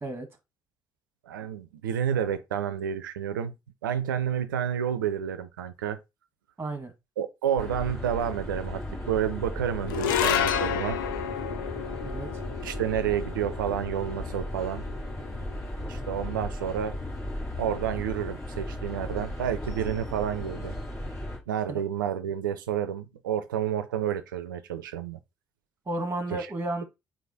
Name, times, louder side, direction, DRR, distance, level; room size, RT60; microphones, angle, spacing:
voice 1, 1.3-3.5 3.8-6.0 7.2-11.0 12.6-14.8 15.9-17.0 17.6-20.8 21.5-25.2 26.3-26.5, right 9 dB, 90° right, 0.4 m, -30 dB
voice 2, 6.6-6.9 12.0-12.3 21.7-21.8 25.9-26.8, right 2 dB, 20° right, 1.2 m, -32 dB
sound 1, 7.6-21.4, left 1 dB, 25° left, 2.1 m, -36 dB
sound 2, 9.9-16.4, left 9 dB, 85° left, 0.5 m, -31 dB
4.8 x 2.5 x 4.1 m
hypercardioid pair, 50°, 10 cm